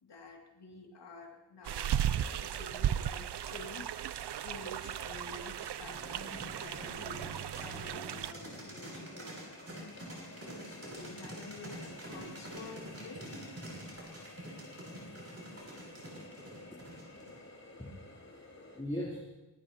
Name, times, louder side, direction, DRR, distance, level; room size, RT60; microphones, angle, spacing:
voice 1, 0.0-9.4 10.3-13.5, left 3 dB, 75° left, 0 dB, 2.6 m, -50 dB
sound 1, 1.6-8.3, right 10 dB, 75° right, 0.6 m, -36 dB
Water tap faucet, 3.4-18.8, left 2 dB, 40° left, 3.1 m, -54 dB
sound 2, 5.9-17.4, right 1 dB, 35° right, 6.5 m, -46 dB
voice 2, 17.6-19.4, equal, 15° left, -6 dB, 3.5 m, -41 dB
25.0 x 18.5 x 2.9 m, 1.0 s
wide cardioid pair, 155°, 41 cm